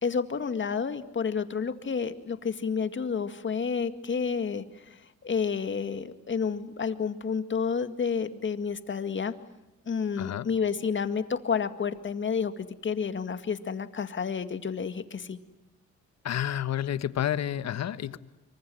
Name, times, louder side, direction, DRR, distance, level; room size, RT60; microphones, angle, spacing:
voice 1, 0.0-9.3 9.9-15.4, left 6 dB, 40° left, 10 dB, 2.1 m, -30 dB
voice 2, 16.2-18.2, left 10 dB, 60° left, 14 dB, 1.3 m, -30 dB
26.0 x 24.0 x 7.9 m, 0.97 s
cardioid pair, 90°, 30 cm